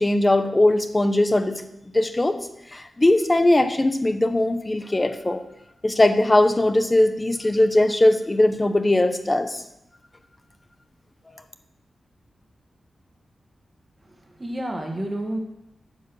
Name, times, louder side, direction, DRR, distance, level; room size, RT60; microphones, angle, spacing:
voice 1, 0.0-1.6 1.9-2.4 2.7-5.4 5.8-9.6, left 1 dB, 20° left, 9 dB, 0.8 m, -20 dB
voice 2, 14.0-15.4, right 1 dB, 20° right, 2 dB, 1.6 m, -30 dB
9.7 x 7.2 x 6.2 m, 0.83 s
wide cardioid pair, 155°, 0 cm